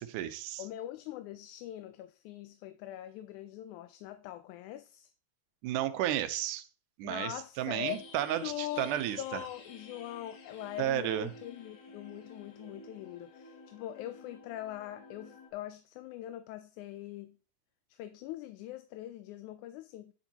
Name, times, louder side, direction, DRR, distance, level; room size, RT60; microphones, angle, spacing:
voice 1, 0.0-0.6 5.6-6.6 7.0-9.4 10.8-11.3, right 12 dB, 85° right, 2.2 m, -33 dB
voice 2, 0.6-5.1 7.0-8.0 8.4-17.4 17.9-20.1, left 13 dB, 80° left, 2.0 m, -42 dB
sound 1, 7.9-15.5, left 3 dB, 60° left, 2.0 m, -52 dB
9.9 x 7.2 x 2.9 m
omnidirectional pair, 3.5 m